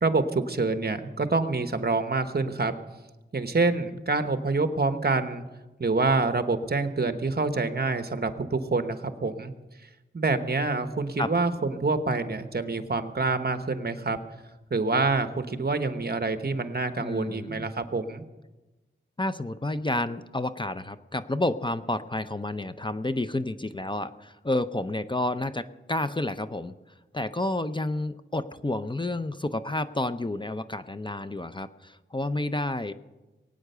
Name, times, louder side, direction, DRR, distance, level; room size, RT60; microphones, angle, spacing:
voice 1, 0.0-2.7 3.3-5.4 5.8-9.5 10.1-14.2 14.7-18.2, right 3 dB, 50° right, 9 dB, 1.1 m, -26 dB
voice 2, 17.0-17.7 19.2-26.7 27.1-32.9, left 2 dB, 25° left, 11 dB, 0.6 m, -30 dB
21.5 x 9.2 x 6.7 m, 1.1 s
wide cardioid pair, 85°, 21 cm